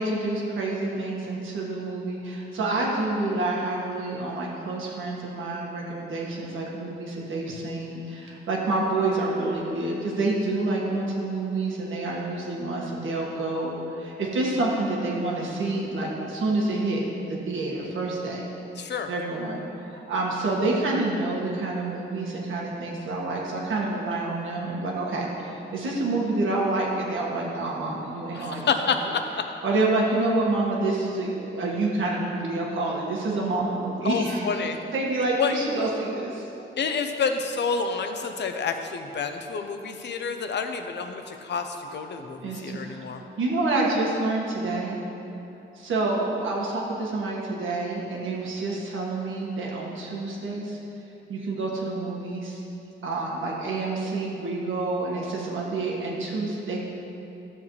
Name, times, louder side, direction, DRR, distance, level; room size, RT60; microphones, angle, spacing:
voice 1, 0.0-18.5 19.1-28.6 29.6-34.6 34.9-36.5 42.4-43.0 43.4-45.0 45.8-50.8 51.3-52.6 53.0-56.8, right 2 dB, 85° right, -3 dB, 1.7 m, -28 dB
voice 2, 18.8-19.1 28.3-29.4 34.0-34.8 35.4-35.6 36.8-43.2, left 5 dB, 60° left, 6 dB, 0.7 m, -28 dB
13.0 x 7.3 x 3.2 m, 2.9 s
cardioid pair, 110°, 20 cm